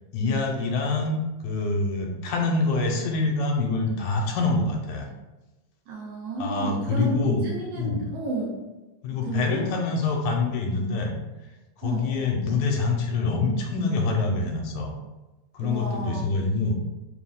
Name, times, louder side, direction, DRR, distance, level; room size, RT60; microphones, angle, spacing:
voice 1, 0.1-5.1 6.4-7.4 7.8-8.0 9.0-11.1 11.8-14.9 15.5-16.8, left 3 dB, 85° left, 1 dB, 2.1 m, -25 dB
voice 2, 5.9-8.6 9.1-9.7 11.8-12.1 15.6-16.3, right 2 dB, 70° right, -3 dB, 1.7 m, -32 dB
4.9 x 2.3 x 3.6 m, 1.1 s
omnidirectional pair, 3.3 m